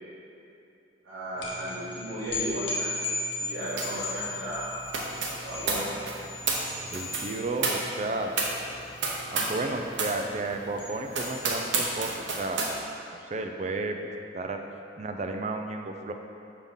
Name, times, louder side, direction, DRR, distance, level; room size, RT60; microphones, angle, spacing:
voice 1, 1.0-3.0 3.4-4.8 5.4-5.9, right 1 dB, 65° right, -13 dB, 1.4 m, -35 dB
sound 1, 1.4-12.0, left 2 dB, 75° left, 0.9 m, -37 dB
sound 2, 3.8-4.0 4.3-9.6 9.9-10.2 10.6-10.7 11.1-12.7, right 3 dB, 80° right, 0.8 m, -31 dB
voice 2, 6.9-8.4 9.3-12.1 12.4-12.6 13.3-14.6 15.0-16.1, right 2 dB, 40° right, 4 dB, 0.4 m, -32 dB
5.8 x 3.5 x 5.6 m, 2.7 s
head